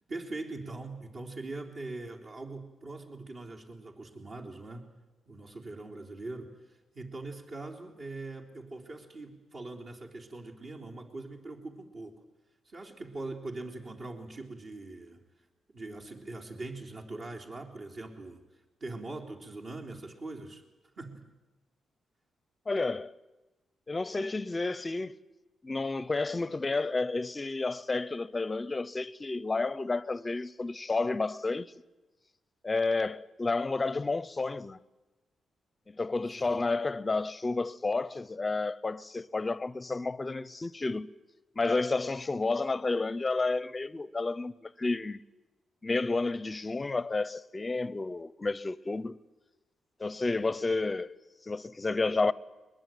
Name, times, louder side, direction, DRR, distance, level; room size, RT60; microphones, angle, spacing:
voice 1, 0.1-4.9 5.3-12.2 12.7-15.2 15.7-18.4 18.8-20.6 21.0-21.3 36.4-36.6, right 2 dB, 50° right, 3.6 m, -42 dB
voice 2, 22.7-23.1 23.9-25.2 25.6-31.7 32.6-34.8 35.9-41.1 41.6-45.2 45.8-49.2 50.0-51.2 51.5-52.3, left 3 dB, 25° left, 0.7 m, -31 dB
22.5 x 21.5 x 9.2 m
cardioid pair, 105°, 0 cm